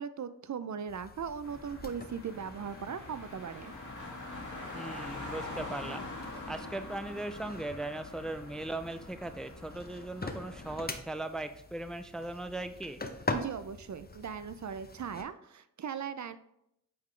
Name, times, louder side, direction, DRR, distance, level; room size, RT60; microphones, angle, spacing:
voice 1, 0.0-3.7 13.3-16.4, right 7 dB, 55° right, 13 dB, 0.5 m, -39 dB
sound 1, 0.9-15.2, left 3 dB, 25° left, 0.8 m, -44 dB
Car, 1.4-11.0, left 2 dB, 55° left, 1.7 m, -44 dB
voice 2, 4.7-6.1 6.5-13.0, right 2 dB, ahead, 10 dB, 0.4 m, -38 dB
8.6 x 3.7 x 3.2 m, 0.77 s
cardioid pair, 45°, 35 cm